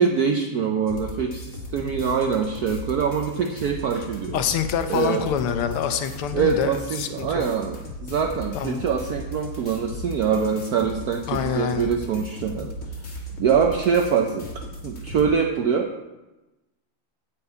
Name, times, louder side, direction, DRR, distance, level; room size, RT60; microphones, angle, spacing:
voice 1, 0.0-4.4 4.9-5.3 6.3-12.7 13.4-14.5 14.8-15.9, right 6 dB, 75° right, 4 dB, 0.8 m, -24 dB
sound 1, 0.9-15.3, equal, 40° left, 2.0 m, -37 dB
voice 2, 4.3-7.4 8.5-8.8 11.3-11.9, left 8 dB, 80° left, 9 dB, 1.7 m, -26 dB
10.0 x 5.2 x 8.1 m, 1.1 s
omnidirectional pair, 2.4 m